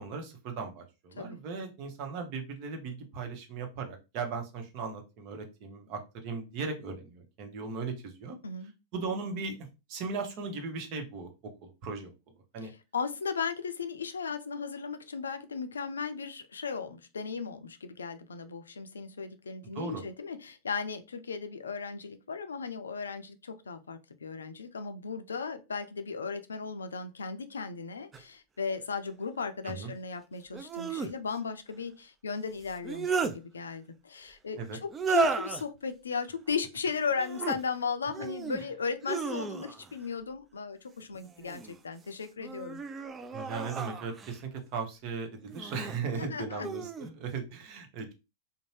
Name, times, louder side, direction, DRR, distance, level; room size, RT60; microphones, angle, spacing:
voice 1, 0.0-8.4 8.9-9.6 9.9-11.3 11.6-12.1 12.5-12.7 19.7-20.0 29.6-29.9 34.6-34.8 43.3-48.1, right 4 dB, 50° right, 0.8 m, -37 dB
voice 2, 12.6-42.8 46.1-46.7, left 5 dB, 85° left, 0.4 m, -36 dB
sound 1, 28.1-28.2 30.5-31.1 32.6-33.4 34.9-35.6 37.1-37.6 38.1-38.6 39.0-39.9 41.1-41.8 42.4-44.4 45.5-46.0 46.6-47.1, right 5 dB, 25° right, 0.4 m, -33 dB
2.6 x 2.1 x 3.2 m
hypercardioid pair, 100°, 0 cm